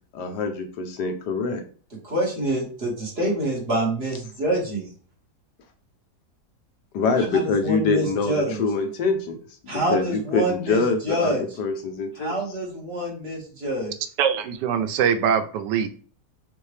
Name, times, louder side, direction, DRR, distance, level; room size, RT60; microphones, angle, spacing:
voice 1, 0.1-1.6 6.9-9.4 9.6-12.3, left 4 dB, 80° left, 5 dB, 1.4 m, -25 dB
voice 2, 2.0-4.9 7.3-8.6 9.7-11.4 12.2-13.9, right 1 dB, 40° right, -3 dB, 1.8 m, -26 dB
voice 3, 14.2-15.9, right 7 dB, 90° right, 9 dB, 1.2 m, -22 dB
5.4 x 2.7 x 3.3 m, 0.42 s
omnidirectional pair, 1.8 m